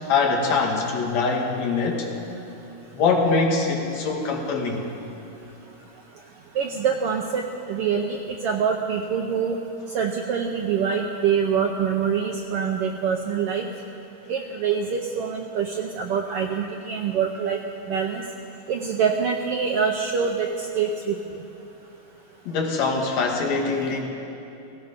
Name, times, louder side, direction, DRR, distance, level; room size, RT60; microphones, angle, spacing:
voice 1, 0.1-2.1 2.9-4.9 22.5-24.0, left 4 dB, 70° left, 1 dB, 2.7 m, -23 dB
voice 2, 6.5-9.6 9.9-13.7 14.3-17.6 17.9-18.2 18.7-20.5 20.8-21.2, right 6 dB, 75° right, 2 dB, 1.4 m, -25 dB
17.0 x 15.5 x 5.2 m, 3.0 s
omnidirectional pair, 3.4 m